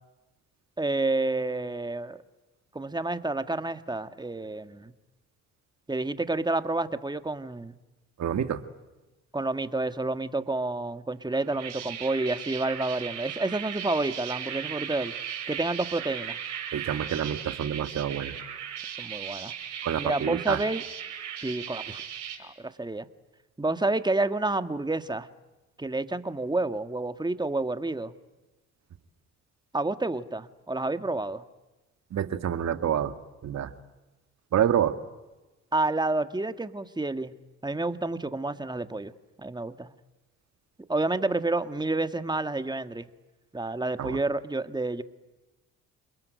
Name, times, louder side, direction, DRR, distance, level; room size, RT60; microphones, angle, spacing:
voice 1, 0.8-2.2 2.7-4.9 5.9-7.7 9.3-15.1 15.5-16.4 19.0-19.5 20.0-20.8 21.4-22.0 22.4-23.1 23.6-25.3 25.8-28.1 29.7-31.4 35.7-37.3 37.6-39.1 39.4-39.9 40.9-43.1 43.5-45.0, right 2 dB, 15° right, 10 dB, 1.8 m, -29 dB
voice 2, 8.2-8.6 16.7-18.4 19.8-20.6 32.1-33.1 33.4-33.7 34.5-34.9 44.0-44.2, right 9 dB, 60° right, 9 dB, 2.0 m, -27 dB
sound 1, 11.3-22.4, right 9 dB, 85° right, 6.2 m, -37 dB
29.0 x 21.5 x 9.3 m, 1.1 s
supercardioid pair, 60°, 31 cm